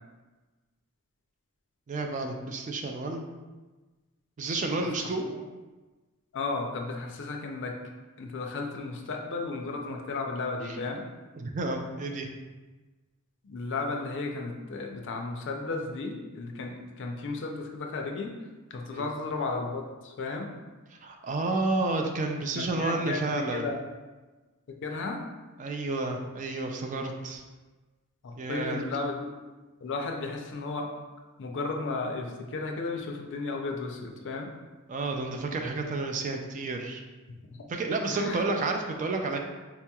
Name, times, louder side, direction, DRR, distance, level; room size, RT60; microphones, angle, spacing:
voice 1, 1.9-3.2 4.4-5.3 10.7-10.8 11.4-12.3 18.9-19.0 21.0-23.7 25.6-27.4 28.4-28.8 34.9-37.0 37.7-39.4, right 3 dB, 35° right, 3 dB, 0.3 m, -30 dB
voice 2, 4.9-5.3 6.3-7.8 8.2-11.0 13.4-18.4 18.7-20.5 22.5-23.8 24.8-25.2 28.5-29.3 29.8-30.9 31.4-34.5 37.5-37.6 38.1-38.4, left 3 dB, 55° left, 2 dB, 0.5 m, -34 dB
4.3 x 2.9 x 2.3 m, 1.2 s
head